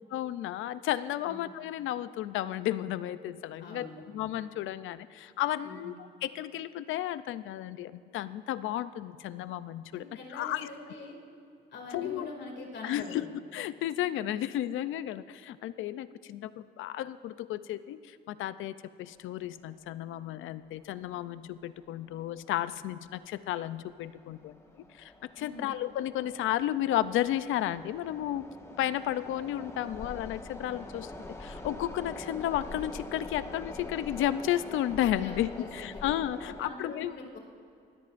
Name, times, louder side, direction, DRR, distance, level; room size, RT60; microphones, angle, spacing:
voice 1, 0.1-3.9 4.1-5.9 6.2-10.0 10.3-10.7 11.9-12.3 12.8-13.3 13.5-24.5 24.9-28.4 28.8-37.1, left 12 dB, 80° left, 15 dB, 0.5 m, -33 dB
voice 2, 3.6-4.0 5.6-5.9 9.9-11.2 11.7-13.2 25.4-25.7 35.1-35.9 36.6-37.4, left 3 dB, 60° left, 1 dB, 2.5 m, -44 dB
sound 1, 19.8-19.9 20.2-20.3 21.0-21.2 21.5-21.7 22.2-22.6 23.1-36.7, left 1 dB, 15° left, 1.5 m, -45 dB
21.5 x 16.5 x 2.6 m, 2.6 s
cardioid pair, 90°, 20 cm